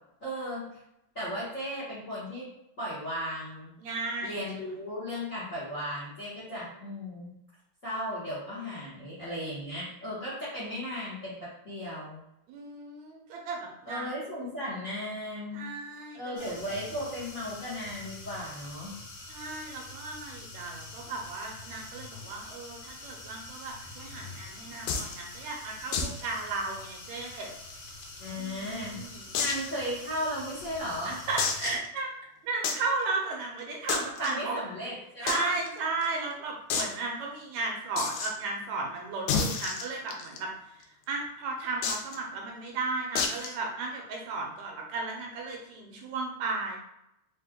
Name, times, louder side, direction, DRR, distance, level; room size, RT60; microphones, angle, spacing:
voice 1, 0.2-0.7 1.1-2.5 2.8-3.7 4.2-7.3 7.8-11.4 11.6-12.2 13.9-15.6 16.1-18.9 28.2-29.0 29.3-31.2 34.2-35.5, equal, 45° left, -9 dB, 1.0 m, -35 dB
voice 2, 3.8-4.4 12.5-14.1 15.5-16.6 19.3-27.5 28.4-29.3 31.0-32.1 32.4-34.6 35.2-46.8, right 3 dB, 75° right, 0 dB, 1.9 m, -35 dB
sound 1, 16.4-31.8, left 3 dB, 65° left, 1.8 m, -45 dB
sound 2, 24.9-25.2 25.9-26.2 26.5-26.6 27.0-27.1 27.7-28.5 29.3-29.7 30.3-30.4 31.4-31.9 32.6-32.9 33.9-34.3 35.3-35.4 35.7-35.8 36.0-36.1 36.7-36.9 38.0-38.3 39.3-40.4 41.8-42.2 43.2-43.5, left 5 dB, 85° left, 2.0 m, -30 dB
5.1 x 2.5 x 3.5 m, 0.81 s
omnidirectional pair, 3.4 m